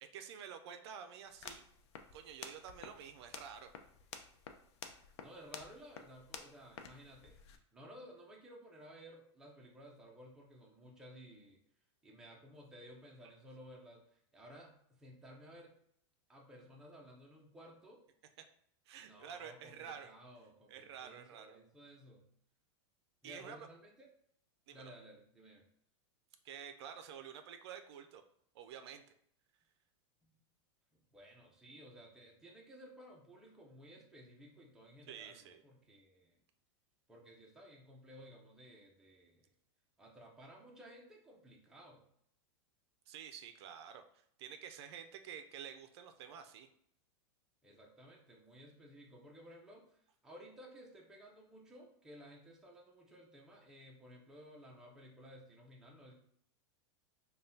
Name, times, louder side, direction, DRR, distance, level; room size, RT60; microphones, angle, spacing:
voice 1, 0.0-1.6 2.1-3.7 18.4-18.5 18.9-20.1 20.7-21.6 23.2-23.7 24.7-24.9 26.4-28.2 28.5-29.0 35.1-35.6 43.1-44.0 44.4-46.7, right 8 dB, 65° right, 8 dB, 0.4 m, -49 dB
sound 1, 1.3-7.6, left 6 dB, 65° left, 0.5 m, -52 dB
voice 2, 5.2-7.4 7.7-11.6 12.0-15.7 16.3-18.0 19.0-22.2 23.2-24.1 24.7-25.7 31.1-36.4 37.1-39.5 40.0-42.0 47.6-56.1, equal, 5° right, -2 dB, 0.5 m, -56 dB
5.2 x 2.3 x 2.6 m, 0.68 s
supercardioid pair, 155°, 15 cm